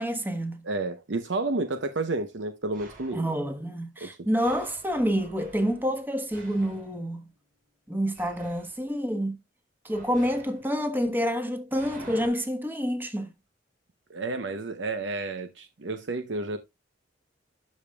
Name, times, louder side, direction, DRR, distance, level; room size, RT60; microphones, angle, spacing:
voice 1, 0.0-0.6 3.1-7.2 7.9-9.4 9.8-13.3, equal, 10° right, 1.2 m, -28 dB
voice 2, 0.6-3.3 4.0-4.1 14.1-16.6, right 2 dB, 75° right, 0.8 m, -31 dB
sound 1, 2.7-3.4 4.4-7.7 8.1-8.8 9.9-12.3, right 2 dB, 50° right, 3.9 m, -49 dB
12.0 x 5.1 x 2.3 m
head